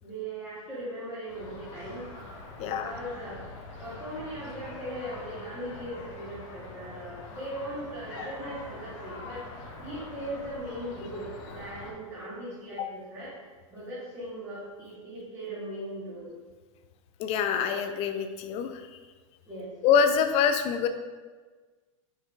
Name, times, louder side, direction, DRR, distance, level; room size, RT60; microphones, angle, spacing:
voice 1, 0.0-2.1 2.6-3.4 3.8-9.4 9.8-13.3 13.7-16.3 19.4-19.7, right 1 dB, 10° right, -12 dB, 1.5 m, -39 dB
sound 1, 1.3-11.9, left 2 dB, 65° left, 0.9 m, -44 dB
voice 2, 2.6-2.9 17.2-18.9 19.8-20.9, left 7 dB, 35° left, 8 dB, 0.4 m, -25 dB
4.9 x 3.1 x 3.2 m, 1.4 s
hypercardioid pair, 115°, 17 cm